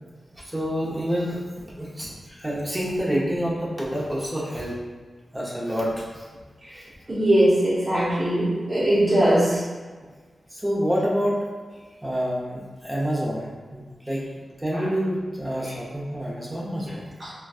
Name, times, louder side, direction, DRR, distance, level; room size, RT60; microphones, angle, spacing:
voice 1, 0.4-4.8 5.3-6.3 10.5-11.4 12.0-14.2 14.6-17.0, equal, 15° right, -5 dB, 0.9 m, -27 dB
voice 2, 7.1-9.6 14.7-14.9 15.6-15.7 17.2-17.3, right 1 dB, 40° right, -8 dB, 1.1 m, -21 dB
3.9 x 2.3 x 2.4 m, 1.4 s
cardioid pair, 55°, 0 cm